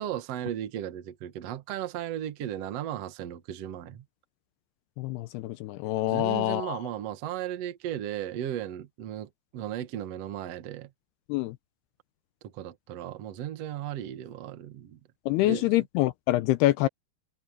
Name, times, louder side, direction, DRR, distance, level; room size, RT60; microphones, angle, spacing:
voice 1, 0.0-4.0 6.1-10.9 12.5-15.0 15.4-15.7, right 11 dB, 65° right, 1.6 m, -35 dB
voice 2, 5.0-6.8 11.3-11.6 15.3-16.9, left 16 dB, 80° left, 2.5 m, -26 dB
omnidirectional pair, 5.0 m